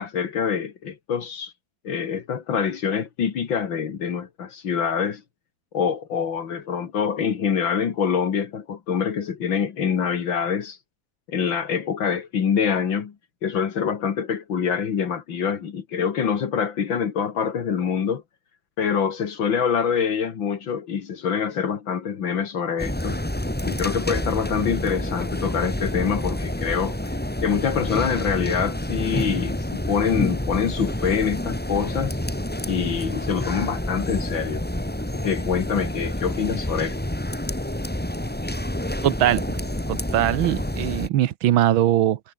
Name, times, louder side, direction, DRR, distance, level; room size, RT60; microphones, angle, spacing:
voice 1, 0.0-1.5 1.8-5.2 5.7-10.8 11.3-13.1 13.4-18.2 18.8-23.2 23.6-32.2 32.7-34.7 35.2-37.0, left 7 dB, 70° left, 2.5 m, -25 dB
sound 1, 22.8-41.1, left 1 dB, 5° left, 1.8 m, -28 dB
voice 2, 39.0-39.6 39.9-42.2, right 13 dB, 90° right, 1.7 m, -21 dB
omnidirectional pair, 2.2 m